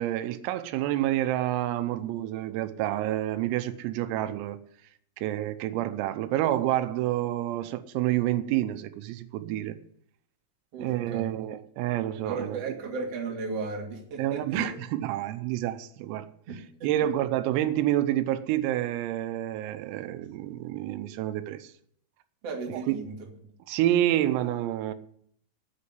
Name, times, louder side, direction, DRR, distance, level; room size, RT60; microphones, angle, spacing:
voice 1, 0.0-4.6 5.2-9.8 10.8-12.8 14.2-16.3 16.8-21.7 22.9-23.0 23.7-24.9, right 13 dB, 90° right, 11 dB, 3.6 m, -28 dB
voice 2, 10.7-11.3 12.2-14.7 16.5-17.1 22.4-23.2, right 4 dB, 40° right, 0 dB, 2.5 m, -35 dB
9.4 x 8.4 x 9.8 m, 0.66 s
omnidirectional pair, 5.9 m